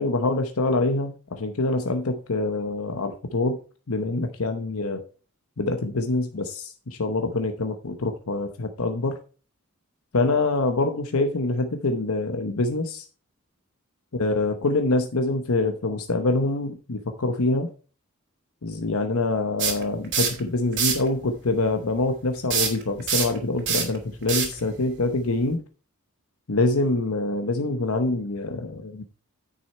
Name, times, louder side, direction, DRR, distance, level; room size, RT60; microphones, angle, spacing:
voice 1, 0.0-3.6 3.9-5.0 5.6-9.2 10.1-13.1 14.1-17.7 18.6-25.6 26.5-29.0, left 2 dB, 80° left, 6 dB, 0.9 m, -25 dB
sound 1, 19.6-20.4 20.7-21.1 22.5-25.5, right 6 dB, 55° right, 2.6 m, -25 dB
9.6 x 6.4 x 4.3 m, 0.37 s
head